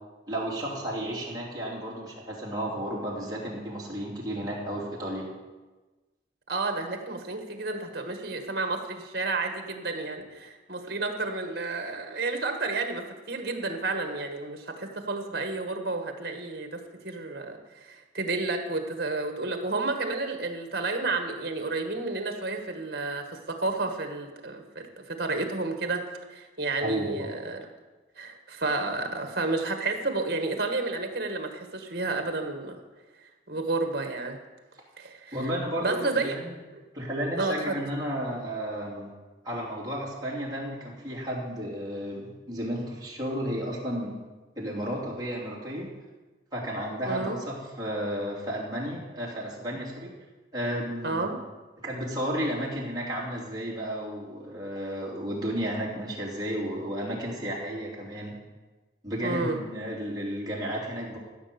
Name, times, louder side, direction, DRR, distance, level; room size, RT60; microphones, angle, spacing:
voice 1, 0.3-5.3 26.8-27.3 35.3-36.5 36.9-39.1 39.4-44.2 44.6-45.9 46.5-50.1 50.5-51.3 51.8-58.3 59.0-61.2, equal, 20° right, -5 dB, 3.0 m, -33 dB
voice 2, 6.5-26.0 26.3-27.7 28.2-32.8 33.5-34.4 35.0-35.5 35.8-36.4 36.7-36.8 37.4-37.8 47.0-47.4 51.0-51.3 59.2-59.6, right 3 dB, 55° right, 5 dB, 1.6 m, -31 dB
15.0 x 6.8 x 7.0 m, 1.2 s
head